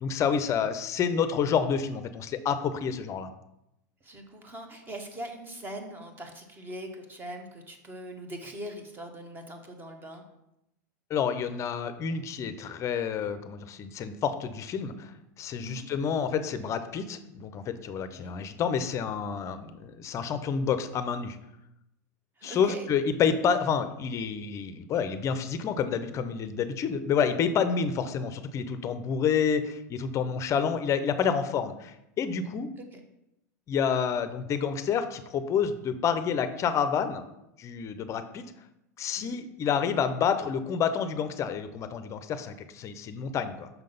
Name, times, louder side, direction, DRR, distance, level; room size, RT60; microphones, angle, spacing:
voice 1, 0.0-3.3 11.1-21.4 22.4-32.7 33.7-37.2 37.6-38.5 39.0-43.7, left 7 dB, 30° left, 11 dB, 0.5 m, -29 dB
voice 2, 4.0-10.2 15.6-15.9 18.1-18.3 22.4-22.9 30.5-30.6 32.8-33.0 39.2-39.4, right 1 dB, 20° right, 5 dB, 1.0 m, -41 dB
5.8 x 3.8 x 5.3 m, 0.86 s
hypercardioid pair, 120°, 10 cm